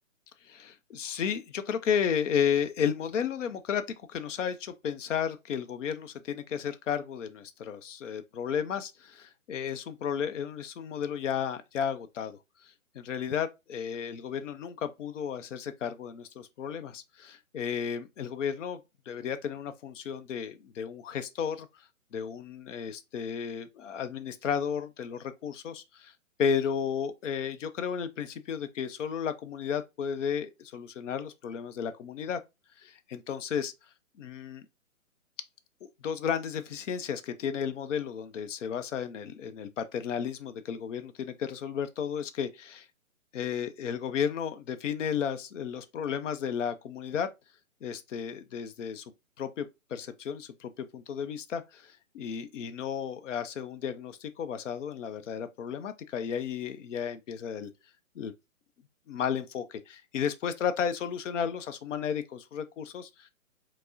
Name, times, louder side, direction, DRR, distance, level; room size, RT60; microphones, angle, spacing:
voice 1, 0.4-3.8 4.1-18.8 19.1-26.1 26.4-32.4 32.8-33.7 34.2-34.7 36.0-42.9 43.3-47.3 47.8-49.1 49.4-57.7 58.2-58.3 59.1-63.3, left 7 dB, 60° left, 0.5 m, -33 dB
4.5 x 2.0 x 2.4 m
hypercardioid pair, 160°, 42 cm